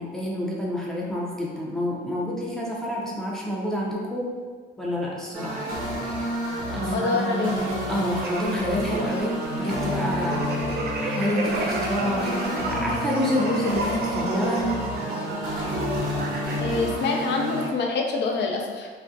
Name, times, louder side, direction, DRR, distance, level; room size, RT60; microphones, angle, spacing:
voice 1, 0.0-4.3 4.8-5.7 6.0-6.3 6.7-7.1 7.9-10.4 10.7-14.7 16.8-16.9, left 1 dB, ahead, -5 dB, 0.5 m, -28 dB
sound 1, 5.3-17.7, equal, 75° right, 1.0 m, -29 dB
voice 2, 6.8-7.6 16.6-18.9, left 4 dB, 60° left, 1 dB, 0.5 m, -26 dB
sound 2, 8.1-16.7, right 2 dB, 55° right, 0.4 m, -33 dB
2.4 x 2.1 x 2.6 m, 1.5 s
cardioid pair, 90°, 20 cm